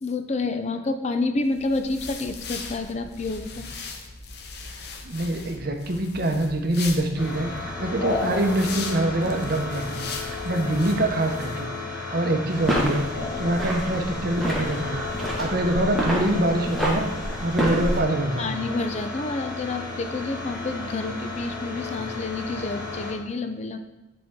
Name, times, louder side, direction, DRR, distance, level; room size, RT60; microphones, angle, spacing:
voice 1, 0.0-3.7 18.4-23.8, left 3 dB, 35° left, 7 dB, 0.4 m, -29 dB
sound 1, 1.5-11.7, left 4 dB, 60° left, 0.8 m, -39 dB
voice 2, 5.0-13.1 13.4-17.1 17.4-18.6, right 1 dB, 55° right, 4 dB, 0.8 m, -25 dB
sound 2, 7.2-23.1, left 3 dB, 75° left, 1.6 m, -33 dB
sound 3, 12.5-18.0, equal, ahead, 1.3 m, -28 dB
10.0 x 4.3 x 3.6 m, 0.99 s
head